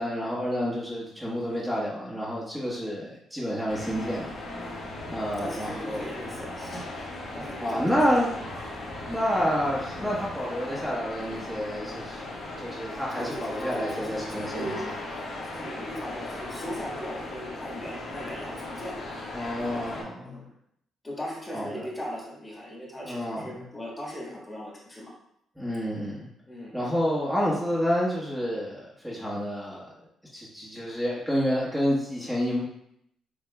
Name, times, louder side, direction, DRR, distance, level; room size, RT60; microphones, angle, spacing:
voice 1, 0.0-4.3 5.1-6.0 7.6-8.3 9.1-14.9 19.3-20.4 21.5-21.8 23.0-23.6 25.5-26.3 26.7-29.9 30.3-32.7, equal, 5° right, -7 dB, 1.3 m, -29 dB
sound 1, 3.7-20.0, left 2 dB, 70° left, 1.5 m, -37 dB
voice 2, 5.4-7.1 7.3-8.2 13.1-14.8 15.5-19.1 20.2-20.5 21.0-25.1 26.5-26.7, equal, 20° left, -3 dB, 1.6 m, -38 dB
7.1 x 3.1 x 2.3 m, 0.73 s
cardioid pair, 90°, 0 cm